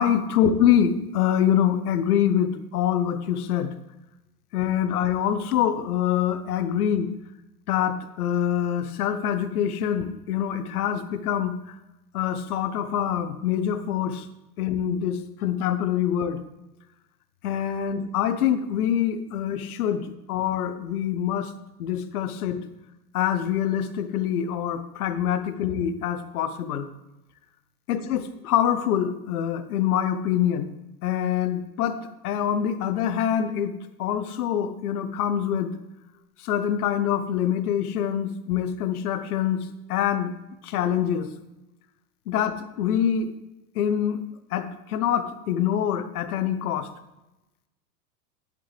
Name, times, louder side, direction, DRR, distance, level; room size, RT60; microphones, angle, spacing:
voice 1, 0.0-3.7 4.5-7.1 7.7-11.5 12.1-14.3 14.6-16.4 17.4-21.5 21.8-22.6 23.1-26.9 27.9-30.7 31.0-32.0 32.2-33.7 34.0-35.7 36.4-40.4 40.6-41.3 42.3-43.3 43.8-44.2 44.5-46.9, left 9 dB, 70° left, 11 dB, 1.0 m, -25 dB
10.5 x 7.4 x 3.4 m, 0.98 s
hypercardioid pair, 115°, 47 cm